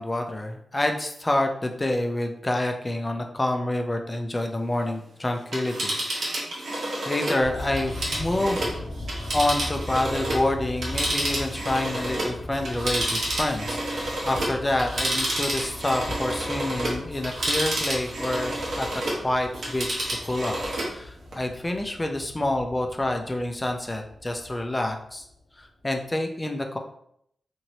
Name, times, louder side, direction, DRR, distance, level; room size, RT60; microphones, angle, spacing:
voice 1, 0.0-6.3 7.1-8.7 9.3-20.6 20.9-25.2 25.6-26.8, left 1 dB, 20° left, 4 dB, 0.4 m, -28 dB
Telephone, 5.4-10.5 10.8-19.2 19.5-20.9 21.3-21.4, right 1 dB, 80° right, 0.9 m, -29 dB
sound 1, 7.4-25.6 25.9-26.0, left 1 dB, 65° left, 0.6 m, -39 dB
3.0 x 2.6 x 2.8 m, 0.71 s
wide cardioid pair, 95°, 0 cm